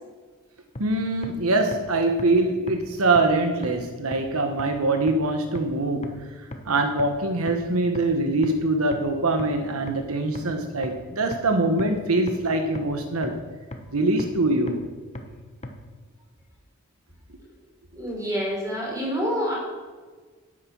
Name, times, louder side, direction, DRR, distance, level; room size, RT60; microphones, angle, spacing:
sound 1, 0.8-0.9 1.2-1.3 1.7-1.8 2.2-2.3 2.7-2.8 3.2-3.3 3.6-3.7 4.1-4.2 4.6-4.7 5.1-5.2 5.6-5.7 6.0-6.1 6.5-6.6 7.0-7.1 7.5-7.6 8.0-8.1 8.4-8.5 8.9-9.0 9.4-9.5 9.9-10.0 10.4-10.5 10.8-10.9 11.3-11.4 11.8-11.9 12.3-12.4 12.8-12.9 13.2-13.3 13.7-13.8 14.2-14.3 14.7-14.8 15.2-15.3 15.6-15.7, left 2 dB, 30° left, 1.2 m, -34 dB
voice 1, 0.8-13.4 13.9-14.8, right 2 dB, 80° right, 6 dB, 1.2 m, -23 dB
voice 2, 17.9-19.5, equal, 15° right, -4 dB, 5.0 m, -27 dB
10.5 x 9.4 x 7.3 m, 1.4 s
head